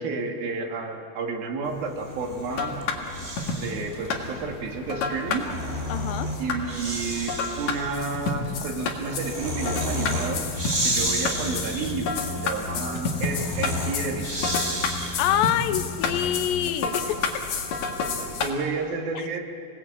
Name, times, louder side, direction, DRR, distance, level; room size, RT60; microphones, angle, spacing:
voice 1, 0.0-2.8 3.5-5.5 6.4-10.5 10.8-14.3 17.9-18.2 18.4-19.4, right 4 dB, 75° right, 2 dB, 4.0 m, -31 dB
Breathing, 1.9-3.9 5.2-15.4, equal, 20° right, 2.8 m, -32 dB
sound 1, 2.5-18.5, left 4 dB, 55° left, 2.9 m, -31 dB
voice 2, 5.9-6.3 15.2-17.4 19.1-19.3, left 11 dB, 80° left, 12 dB, 2.4 m, -26 dB
sound 2, 10.0-16.7, left 5 dB, 35° left, 1.5 m, -37 dB
27.0 x 18.5 x 8.6 m, 2.4 s
omnidirectional pair, 4.2 m